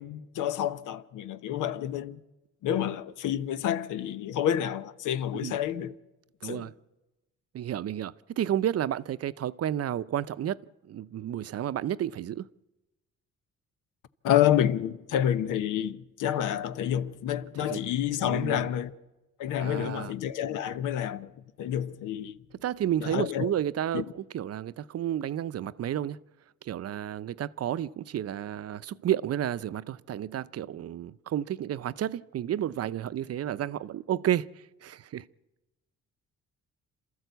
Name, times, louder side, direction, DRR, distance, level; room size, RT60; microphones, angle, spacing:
voice 1, 0.0-2.2 2.6-6.0 6.4-6.7 14.2-18.9 19.4-22.4 23.0-23.5 23.9-24.1, left 10 dB, 85° left, 1.0 m, -29 dB
voice 2, 7.5-10.6 10.9-12.5 17.7-17.8 18.2-18.7 19.6-20.1 22.6-26.2 26.6-34.5 34.8-35.2, right 11 dB, 55° right, 0.6 m, -31 dB
27.5 x 13.5 x 8.1 m
cardioid pair, 90°, 30 cm